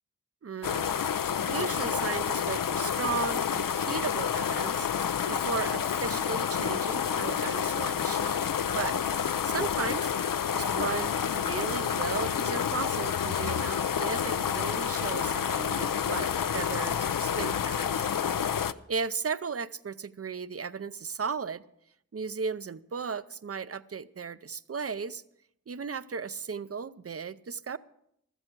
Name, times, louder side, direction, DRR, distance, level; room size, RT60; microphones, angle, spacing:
voice 1, 0.4-8.5 8.7-10.1 10.5-18.1 18.3-21.6 22.1-25.2 25.7-27.8, right 5 dB, 45° right, 16 dB, 0.6 m, -36 dB
sound 1, 0.6-18.7, left 8 dB, 75° left, 0.5 m, -29 dB
14.5 x 13.5 x 4.6 m, 0.75 s
wide cardioid pair, 65°, 33 cm